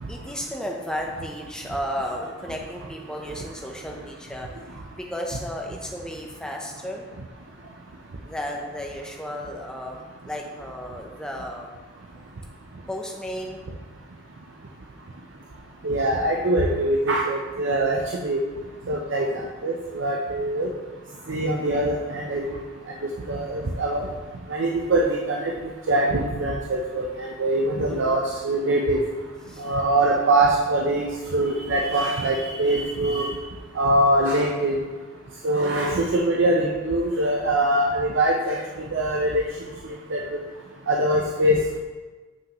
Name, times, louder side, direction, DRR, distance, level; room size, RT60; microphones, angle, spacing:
voice 1, 0.1-4.5 5.0-7.1 8.2-11.8 12.9-13.6 19.4-19.6 21.2-21.4 27.9-28.4 29.5-29.7 35.6-35.9, equal, 5° left, 0 dB, 0.6 m, -34 dB
voice 2, 15.8-18.4 18.9-19.3 19.6-20.7 21.3-22.5 23.3-24.1 24.5-25.5 25.9-29.0 29.6-31.0 31.3-33.3 33.8-34.8 35.4-38.6 38.9-39.4 40.1-40.2 40.9-41.6, right 1 dB, 65° right, 0 dB, 0.5 m, -23 dB
7.6 x 5.8 x 3.0 m, 1.3 s
head